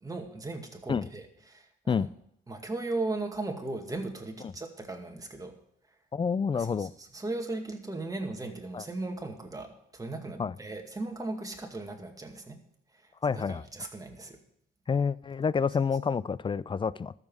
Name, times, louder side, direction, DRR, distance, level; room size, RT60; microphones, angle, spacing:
voice 1, 0.0-2.1 2.5-5.6 6.5-12.6 12.9-14.4, right 2 dB, 20° right, 3 dB, 2.1 m, -37 dB
voice 2, 6.1-6.9 8.7-8.8 10.4-10.5 13.2-13.6 14.9-17.1, left 6 dB, 25° left, 20 dB, 0.4 m, -28 dB
13.5 x 7.4 x 6.3 m, 0.72 s
cardioid pair, 90°, 20 cm